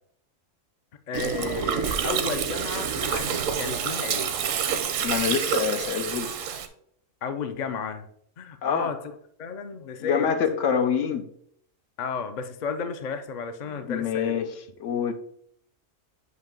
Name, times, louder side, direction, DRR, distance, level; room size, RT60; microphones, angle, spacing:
voice 1, 1.1-4.4 7.2-8.1 8.4-9.0 9.4-10.3 12.0-14.5, left 5 dB, 50° left, 8 dB, 0.5 m, -32 dB
Gurgling, 1.1-6.7, right 7 dB, 80° right, 1.1 m, -28 dB
voice 2, 5.0-6.3 8.6-8.9 10.0-11.2 13.8-14.5 14.8-15.1, left 7 dB, 75° left, 7 dB, 1.1 m, -26 dB
8.0 x 2.8 x 5.2 m, 0.66 s
omnidirectional pair, 1.3 m